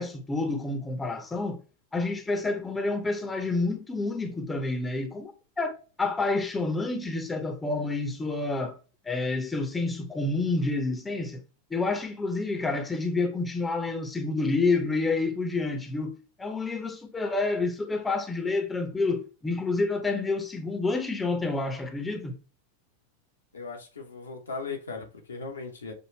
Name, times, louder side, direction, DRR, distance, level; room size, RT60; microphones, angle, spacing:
voice 1, 0.0-1.6 1.9-8.8 9.0-11.4 11.7-22.3, left 3 dB, 10° left, 0.8 m, -29 dB
voice 2, 23.5-25.9, left 4 dB, 75° left, 1.1 m, -38 dB
6.4 x 2.4 x 3.2 m
figure-of-eight pair, 90°, 0 cm